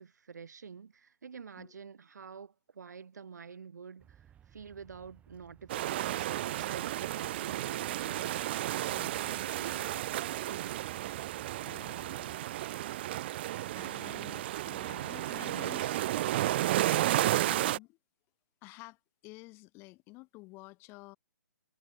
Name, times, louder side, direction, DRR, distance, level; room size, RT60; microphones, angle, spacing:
voice 1, 0.0-8.4 9.3-10.9, right 6 dB, 75° right, 1.5 m, -48 dB
sound 1, 4.0-12.4, right 10 dB, 15° right, 3.1 m, -60 dB
sound 2, 5.7-17.8, right 14 dB, 35° right, 0.4 m, -32 dB
voice 2, 8.8-9.5 11.6-12.4 13.7-16.0 16.9-18.0 18.6-21.2, left 23 dB, 25° left, 1.9 m, -51 dB
hypercardioid pair, 145°, 10 cm